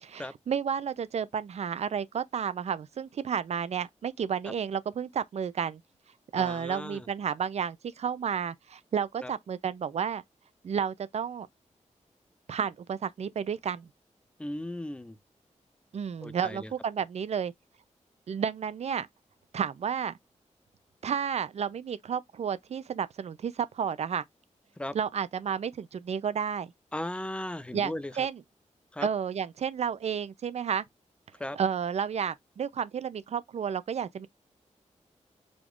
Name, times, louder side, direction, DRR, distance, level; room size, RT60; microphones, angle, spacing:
voice 1, 0.0-5.8 6.3-10.2 10.6-11.5 12.5-13.9 15.9-17.5 18.3-19.1 19.5-20.1 21.0-24.2 24.9-26.7 27.7-28.4 29.0-30.8 31.5-34.3, right 7 dB, 60° right, 0.4 m, -31 dB
voice 2, 6.4-7.0 9.2-9.3 14.4-15.2 16.2-16.7 24.8-24.9 26.9-28.1 28.9-29.1 31.4-31.6, left 1 dB, 10° left, 0.4 m, -36 dB
5.0 x 2.4 x 3.6 m
wide cardioid pair, 180°, 12 cm